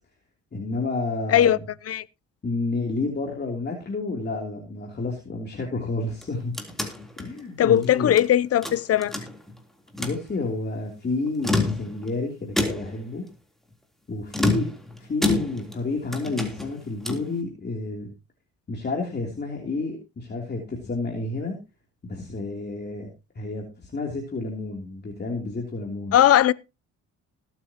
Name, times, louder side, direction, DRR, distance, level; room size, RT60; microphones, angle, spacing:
voice 1, 0.5-1.6 2.4-6.5 7.2-8.1 10.0-13.2 14.1-14.7 15.0-18.1 18.7-21.6 22.0-23.1 23.3-26.2, left 3 dB, 35° left, 3.1 m, -30 dB
sound 1, 6.1-8.3 8.6-9.6 9.9-10.2 11.3-12.1 12.6-13.1 14.3-15.8 16.1-17.3, left 2 dB, ahead, 3.4 m, -28 dB
voice 2, 7.6-9.1 26.1-26.5, left 11 dB, 55° left, 0.6 m, -19 dB
20.0 x 9.0 x 2.9 m
cardioid pair, 90°, 30 cm